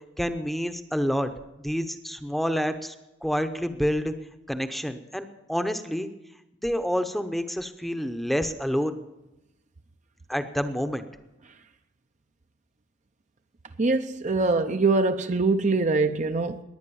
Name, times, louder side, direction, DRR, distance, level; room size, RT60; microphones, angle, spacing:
voice 1, 0.2-1.3 1.6-2.9 3.2-4.1 4.5-6.1 6.6-9.0 10.3-11.0, equal, ahead, 0.8 m, -28 dB
voice 2, 13.8-16.6, right 3 dB, 40° right, 0.6 m, -23 dB
21.0 x 9.5 x 7.0 m
head